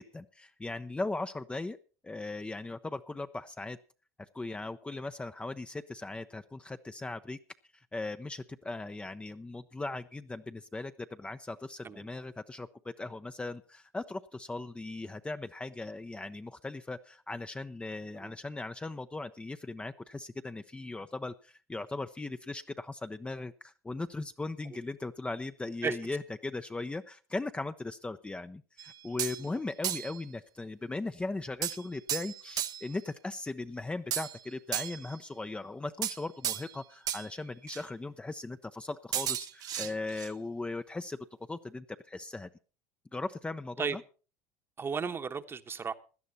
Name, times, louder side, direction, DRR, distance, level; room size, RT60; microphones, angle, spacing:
voice 1, 0.0-1.8 2.0-3.8 4.2-7.4 7.9-41.2 41.5-42.5 43.1-44.0, left 2 dB, 15° left, 0.7 m, -38 dB
sound 1, 28.8-29.5 29.8-30.2 31.6-32.9 34.1-35.2 36.0-36.8 37.1-37.3 37.7-37.8 39.1-40.3, right 11 dB, 50° right, 0.8 m, -34 dB
voice 2, 44.8-45.9, right 5 dB, 30° right, 1.1 m, -34 dB
16.5 x 11.5 x 4.1 m
hypercardioid pair, 80°, 8 cm